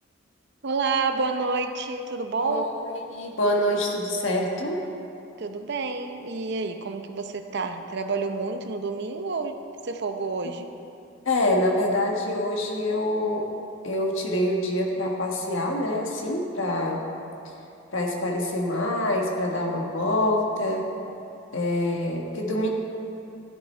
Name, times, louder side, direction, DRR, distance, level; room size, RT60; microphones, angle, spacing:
voice 1, 0.6-2.7 5.4-9.5 9.8-10.7, right 4 dB, 60° right, 7 dB, 0.8 m, -29 dB
voice 2, 2.4-2.8 3.1-4.8 11.2-13.5 13.8-17.0 17.9-20.9 21.5-22.7, left 1 dB, 85° left, 0 dB, 1.5 m, -25 dB
13.0 x 10.0 x 4.4 m, 2.6 s
head